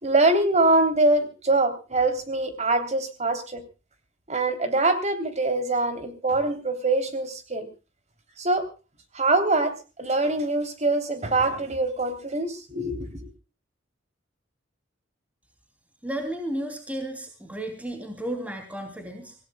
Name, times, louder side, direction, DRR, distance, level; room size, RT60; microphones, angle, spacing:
voice 1, 0.0-3.6 4.3-7.7 8.4-8.6 9.1-13.3, right 2 dB, 35° right, 8 dB, 3.4 m, -24 dB
voice 2, 16.0-19.3, right 1 dB, 10° right, 4 dB, 2.9 m, -33 dB
26.0 x 17.0 x 2.3 m, 0.32 s
head